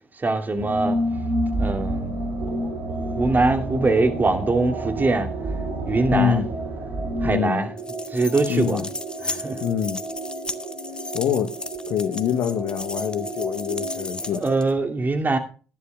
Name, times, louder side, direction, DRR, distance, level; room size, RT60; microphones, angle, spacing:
voice 1, 0.2-1.0 1.5-2.7 3.2-5.3 5.9-6.4 7.2-7.7 8.1-8.8 9.2-9.6 14.2-15.4, right 3 dB, 30° right, 2.5 m, -23 dB
sound 1, 0.6-7.3, right 1 dB, 75° right, 3.1 m, -28 dB
sound 2, 2.4-14.3, right 3 dB, 55° right, 4.1 m, -35 dB
voice 2, 6.1-6.5 7.2-7.6 8.5-8.9 9.6-10.0 11.1-11.5 11.9-14.4, left 8 dB, 60° left, 0.9 m, -24 dB
sound 3, 7.8-14.7, left 2 dB, 15° left, 1.3 m, -35 dB
19.0 x 11.0 x 2.3 m
figure-of-eight pair, 45°, 6 cm